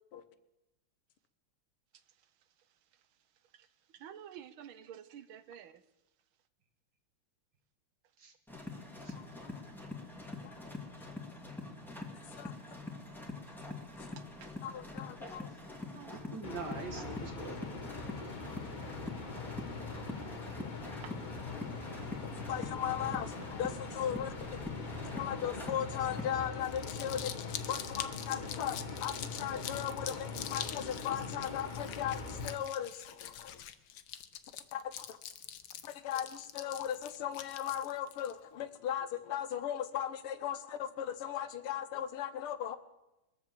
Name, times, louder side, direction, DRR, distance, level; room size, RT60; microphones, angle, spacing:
voice 1, 1.9-5.8 14.4-14.5 15.9-16.3 20.8-21.3, right 9 dB, 75° right, 1.4 m, -53 dB
sound 1, 8.5-26.4, left 2 dB, ahead, 1.7 m, -45 dB
voice 2, 9.1-9.6 10.4-10.6 12.4-12.5 14.6-15.5 22.2-33.6 34.7-35.2 35.8-42.8, left 10 dB, 90° left, 1.8 m, -38 dB
voice 3, 16.1-17.6, right 4 dB, 50° right, 2.1 m, -43 dB
sound 2, 16.4-32.6, left 4 dB, 30° left, 0.8 m, -42 dB
Crumpling crinkling, 26.5-38.3, left 10 dB, 70° left, 1.5 m, -44 dB
22.0 x 7.6 x 7.4 m
omnidirectional pair, 2.4 m